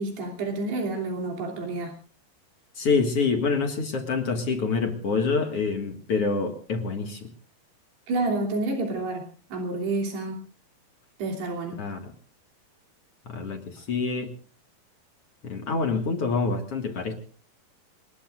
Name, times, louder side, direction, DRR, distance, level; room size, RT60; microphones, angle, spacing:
voice 1, 0.0-1.9 8.1-9.2 9.5-10.4 11.2-11.8, right 2 dB, 85° right, 1 dB, 5.2 m, -29 dB
voice 2, 2.8-7.3 11.8-12.1 13.3-14.3 15.4-17.1, left 4 dB, 50° left, 4 dB, 2.1 m, -26 dB
27.5 x 20.5 x 2.5 m, 0.39 s
omnidirectional pair, 4.6 m